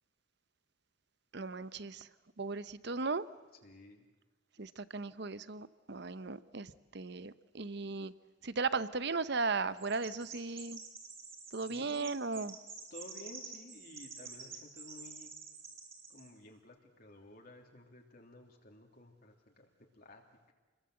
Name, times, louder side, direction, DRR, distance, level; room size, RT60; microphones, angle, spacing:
voice 1, 1.3-2.1 2.4-3.2 4.6-8.1 8.4-10.8 11.5-12.5, right 4 dB, 55° right, 15 dB, 0.9 m, -36 dB
voice 2, 3.6-4.0 4.6-4.7 11.6-12.5 12.9-15.3 16.1-20.5, left 1 dB, 50° left, 2 dB, 3.1 m, -54 dB
Chirp tweet, 9.8-16.3, right 5 dB, 30° right, 4.5 m, -49 dB
28.5 x 22.0 x 7.9 m, 1.3 s
head